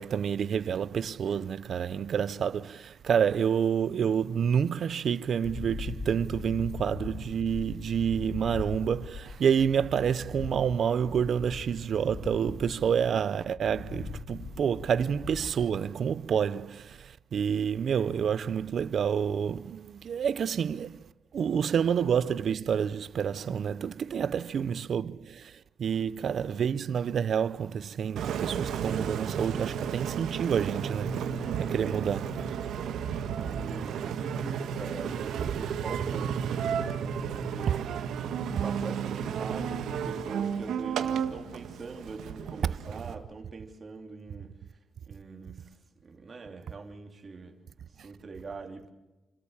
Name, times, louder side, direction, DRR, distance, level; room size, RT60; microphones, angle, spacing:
voice 1, 0.0-32.6 37.7-37.9, right 7 dB, 50° right, 0.6 m, -28 dB
sound 1, 5.4-15.7, left 4 dB, 45° left, 2.6 m, -41 dB
Engine, 28.2-43.1, right 7 dB, 80° right, 1.7 m, -33 dB
voice 2, 31.4-31.9 33.4-37.8 38.6-44.5 45.1-45.7 46.0-47.6 48.0-48.9, right 4 dB, 35° right, 3.2 m, -43 dB
29.5 x 13.5 x 7.2 m
cardioid pair, 135°, 0 cm